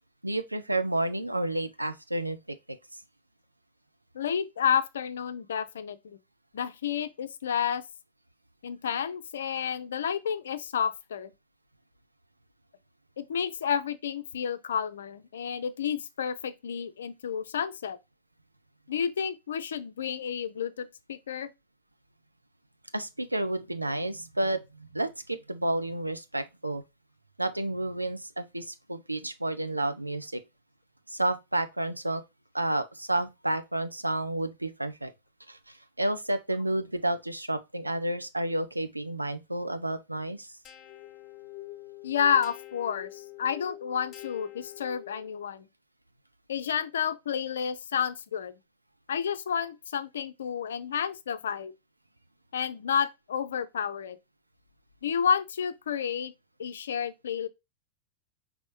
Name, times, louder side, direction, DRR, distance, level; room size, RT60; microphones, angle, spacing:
voice 1, 0.2-2.6 22.9-26.8 27.4-30.4 31.1-32.2 32.5-35.1 35.5-40.5, right 1 dB, 85° right, 0.5 m, -31 dB
voice 2, 4.1-6.2 6.5-7.8 8.6-11.3 13.2-18.0 18.9-21.5 42.0-45.6 46.5-48.5 49.1-51.7 52.5-54.2 55.0-56.3 56.6-57.5, left 7 dB, 65° left, 0.5 m, -30 dB
sound 1, 40.6-45.4, left 16 dB, 30° left, 0.8 m, -45 dB
5.3 x 3.1 x 3.1 m
figure-of-eight pair, 90°, 0 cm